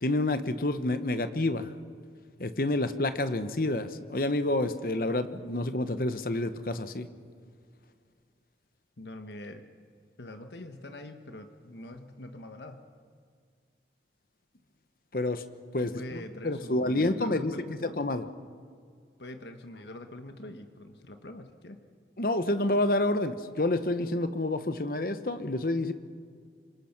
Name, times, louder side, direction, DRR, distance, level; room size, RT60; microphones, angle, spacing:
voice 1, 0.0-1.7 2.4-7.1 15.1-15.5 15.7-17.5 18.0-18.2 22.2-25.9, left 2 dB, 55° left, 11 dB, 1.0 m, -28 dB
voice 2, 9.0-9.6 10.2-12.8 15.8-18.0 19.2-21.8, left 1 dB, 75° left, 7 dB, 1.3 m, -44 dB
26.5 x 21.5 x 6.0 m, 2.1 s
head